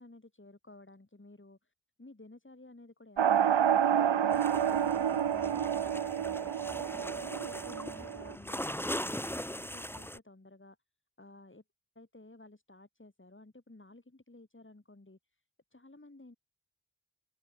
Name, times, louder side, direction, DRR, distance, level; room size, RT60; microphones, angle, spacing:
voice 1, 0.0-1.7 2.0-10.8 11.2-11.6 12.0-15.4 15.7-16.4, left 2 dB, 25° left, 7.3 m, -55 dB
sound 1, 3.2-8.3, right 9 dB, 75° right, 1.1 m, -29 dB
sound 2, 4.3-10.2, equal, 5° left, 4.6 m, -40 dB
open air
cardioid pair, 55°, 45 cm